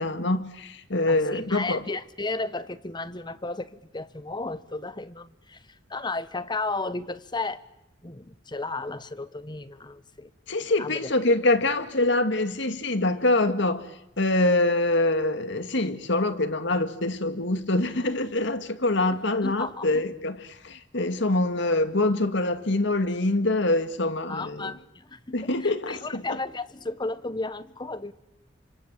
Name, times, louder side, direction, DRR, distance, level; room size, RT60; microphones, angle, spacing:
voice 1, 0.0-1.8 10.5-13.9 14.2-24.7 25.3-26.2, left 2 dB, 65° left, 2.0 m, -25 dB
voice 2, 1.1-7.6 8.0-10.3 10.6-11.1 19.4-19.9 24.3-28.1, left 3 dB, 25° left, 1.2 m, -34 dB
29.0 x 25.5 x 7.5 m
head